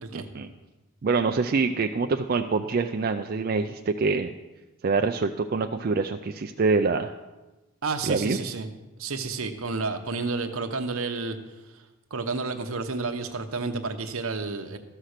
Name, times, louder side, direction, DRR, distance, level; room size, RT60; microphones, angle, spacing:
voice 1, 0.1-0.5 1.0-4.3 4.8-7.1 8.1-8.4, right 4 dB, 45° right, 5 dB, 0.4 m, -25 dB
voice 2, 7.8-8.7 9.0-11.4 12.1-14.8, right 4 dB, 75° right, 7 dB, 0.9 m, -30 dB
13.5 x 5.8 x 6.5 m, 1.1 s
head